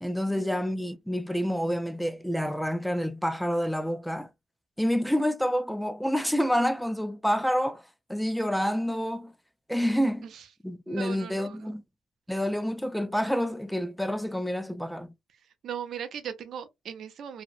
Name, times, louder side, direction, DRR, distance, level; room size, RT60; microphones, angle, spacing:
voice 1, 0.0-4.3 4.8-7.8 8.1-9.3 9.7-10.3 10.6-11.8 12.3-15.1, equal, ahead, 0.3 m, -28 dB
voice 2, 10.9-11.8 15.6-17.4, right 8 dB, 65° right, 0.5 m, -38 dB
2.7 x 2.0 x 2.4 m
cardioid pair, 90°, 0 cm